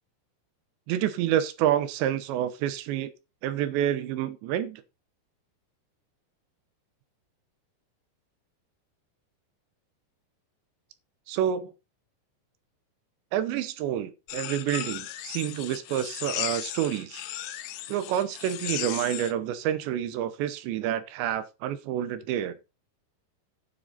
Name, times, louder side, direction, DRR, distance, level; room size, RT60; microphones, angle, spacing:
voice 1, 0.9-3.1 3.4-4.8 11.3-11.7 13.3-17.2 17.9-22.7, right 11 dB, 80° right, 3.0 m, -28 dB
sound 1, 14.3-19.3, left 14 dB, 80° left, 2.5 m, -36 dB
9.8 x 6.6 x 5.5 m
omnidirectional pair, 5.5 m